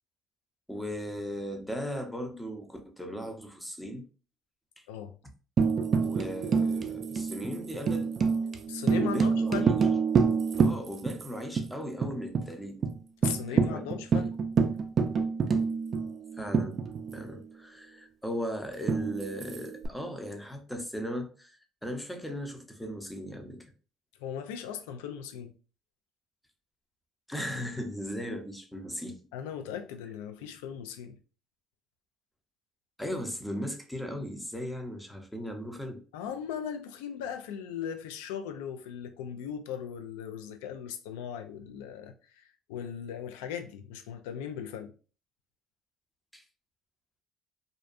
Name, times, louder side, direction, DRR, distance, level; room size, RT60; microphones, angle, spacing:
voice 1, 0.7-4.1 4.8-4.9 6.0-8.1 9.0-9.9 10.6-12.9 13.5-13.9 14.1-14.2 16.4-16.8 17.1-23.7 27.3-29.2 33.0-36.0 46.3-46.4, equal, 5° left, 0.6 m, -37 dB
Tambourine, 5.6-11.3 11.6-11.7 12.0-12.5 12.8-12.9 13.2-17.3 18.9-19.9, right 5 dB, 45° right, 0.3 m, -27 dB
voice 2, 8.7-9.8 13.2-14.4 24.2-25.5 29.3-31.2 36.1-44.9, left 8 dB, 90° left, 0.3 m, -38 dB
2.5 x 2.2 x 2.4 m
supercardioid pair, 80°, 0 cm